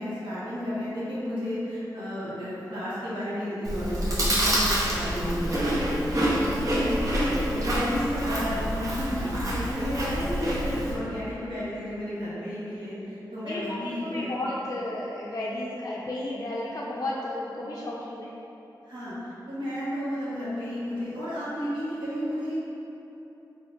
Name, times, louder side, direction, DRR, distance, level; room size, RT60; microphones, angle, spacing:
voice 1, 0.0-14.3 18.8-22.5, equal, 85° right, -11 dB, 1.3 m, -32 dB
Chewing mastication, 3.6-10.9, equal, 45° right, 0.8 m, -27 dB
voice 2, 6.5-6.9 9.5-9.9 12.9-13.0 13.4-18.3, left 1 dB, 45° left, -6 dB, 0.4 m, -34 dB
4.2 x 3.6 x 2.5 m, 3.0 s
cardioid pair, 60°, 8 cm